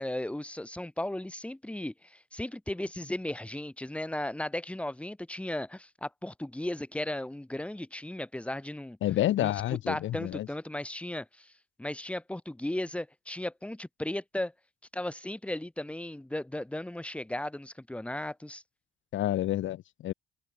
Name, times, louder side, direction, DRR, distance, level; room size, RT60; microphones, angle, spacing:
voice 1, 0.0-9.0 9.4-11.5 11.8-14.5 14.9-18.6, left 1 dB, 5° left, 1.5 m, -36 dB
voice 2, 9.0-10.5 19.1-20.1, left 13 dB, 80° left, 1.6 m, -29 dB
cardioid pair, 90°, 20 cm